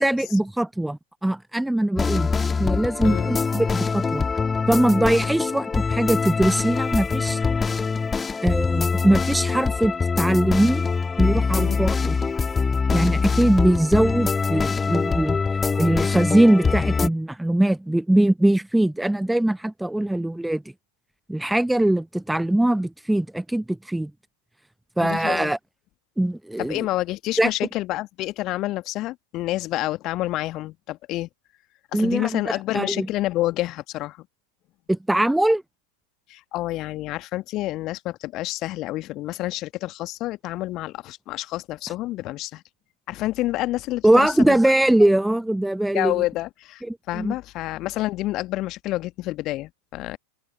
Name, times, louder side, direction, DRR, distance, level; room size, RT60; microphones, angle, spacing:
voice 1, 0.0-2.3 2.6-4.3 4.7-7.4 8.4-10.8 11.2-12.2 12.9-15.4 15.8-20.6 21.3-24.1 25.0-25.6 26.2-26.8 27.4-27.5 31.9-32.4 32.7-33.1 34.9-35.6 44.0-46.1 46.9-47.3, right 1 dB, 5° right, 0.7 m, -21 dB
sound 1, 2.0-17.1, left 5 dB, 15° left, 1.9 m, -23 dB
voice 2, 25.0-25.5 26.6-31.3 31.9-34.2 36.3-42.6 43.1-44.6 45.9-46.8 47.1-50.2, left 17 dB, 35° left, 1.5 m, -28 dB
open air
figure-of-eight pair, 90°, 0 cm